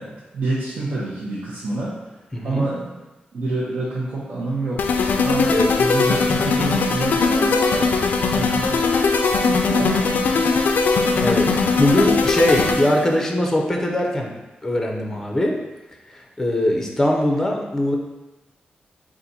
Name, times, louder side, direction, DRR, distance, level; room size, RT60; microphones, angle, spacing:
voice 1, 0.0-1.9 2.4-3.0 3.3-4.9 5.2-8.0 8.3-8.8 9.4-10.1, right 2 dB, 75° right, -9 dB, 0.9 m, -27 dB
voice 2, 2.3-2.6 5.5-5.7 11.2-14.3 14.6-15.6 16.1-18.0, left 1 dB, 15° left, 0 dB, 0.5 m, -21 dB
sound 1, 4.8-13.1, left 4 dB, 70° left, 0.3 m, -20 dB
4.0 x 2.5 x 4.1 m, 1.1 s
wide cardioid pair, 165°, 3 cm